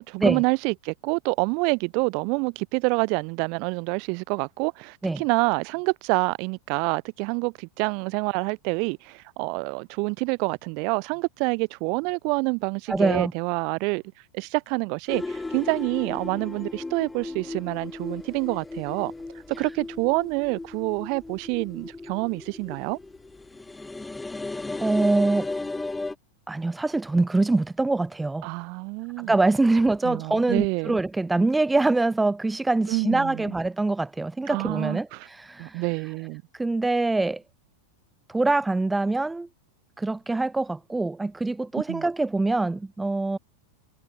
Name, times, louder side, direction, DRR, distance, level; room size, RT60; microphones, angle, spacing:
voice 1, 0.0-14.0 14.3-19.1 19.6-23.0 28.4-29.3 30.0-31.0 32.9-33.5 34.5-35.3 35.6-36.4 41.9-42.1, right 34 dB, 45° right, 7.4 m, -27 dB
voice 2, 12.9-13.3 24.8-25.5 26.5-28.5 29.2-35.8 36.5-37.4 38.3-39.5 40.0-43.4, right 2 dB, 10° right, 1.6 m, -24 dB
sound 1, 15.1-26.1, left 3 dB, 10° left, 2.7 m, -36 dB
figure-of-eight pair, 90°, 0 cm